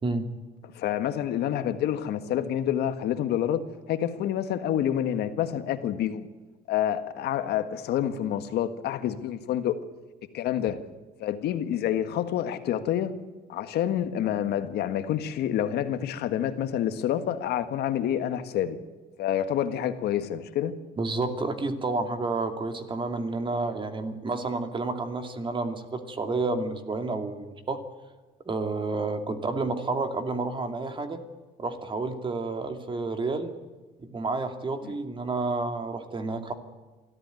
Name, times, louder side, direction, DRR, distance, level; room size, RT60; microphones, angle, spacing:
voice 1, 0.0-0.3 21.0-27.8 28.5-31.2 31.6-33.5 34.0-36.5, right 3 dB, 30° right, 2.6 m, -30 dB
voice 2, 0.7-3.6 3.9-6.3 6.7-9.8 10.3-10.8 11.2-13.1 13.5-18.8 19.2-20.7 34.8-34.9, left 10 dB, 75° left, 1.6 m, -28 dB
24.0 x 14.0 x 9.2 m
cardioid pair, 110°, 17 cm